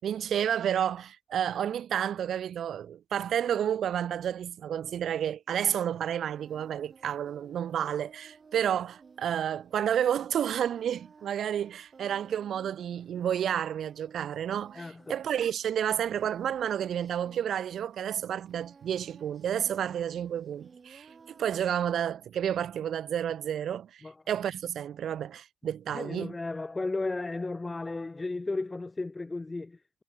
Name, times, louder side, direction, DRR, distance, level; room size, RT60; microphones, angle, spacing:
voice 1, 0.0-26.4, right 9 dB, 65° right, 0.9 m, -30 dB
Singing, 5.5-22.1, right 5 dB, 35° right, 4.8 m, -57 dB
voice 2, 14.7-15.1 24.0-24.1 25.9-30.0, left 3 dB, 20° left, 1.4 m, -34 dB
cardioid pair, 90°, 0 cm